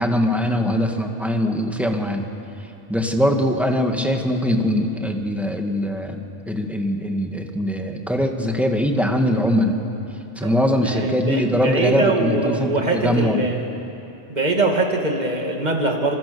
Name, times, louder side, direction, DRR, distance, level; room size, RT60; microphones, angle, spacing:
voice 1, 0.0-2.2 2.9-6.2 6.5-9.8 10.4-13.4, equal, ahead, 3 dB, 2.0 m, -21 dB
voice 2, 10.4-13.7 14.3-16.2, right 2 dB, 35° right, 2 dB, 2.6 m, -23 dB
26.5 x 26.0 x 7.0 m, 2.8 s
omnidirectional pair, 1.2 m